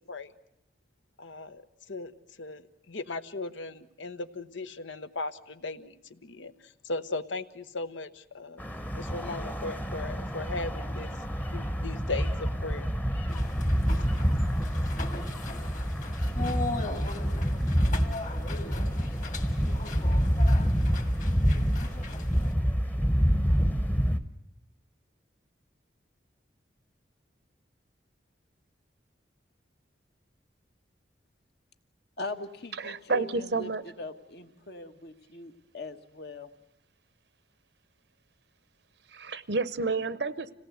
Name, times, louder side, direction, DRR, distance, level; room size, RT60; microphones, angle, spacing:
voice 1, 1.2-1.6 1.9-2.1 2.4-8.6 9.0-11.1 11.5-12.9 13.9-14.1, left 3 dB, 90° left, 11 dB, 1.1 m, -37 dB
sound 1, 8.6-24.2, equal, 10° left, 0.9 m, -27 dB
sound 2, 13.3-22.5, left 2 dB, 40° left, 2.0 m, -39 dB
voice 2, 32.2-33.7 34.0-36.5, left 2 dB, 60° left, 7 dB, 1.3 m, -40 dB
voice 3, 32.7-33.8 39.1-40.5, right 3 dB, 70° right, 16 dB, 0.8 m, -30 dB
26.5 x 17.5 x 8.0 m, 0.84 s
head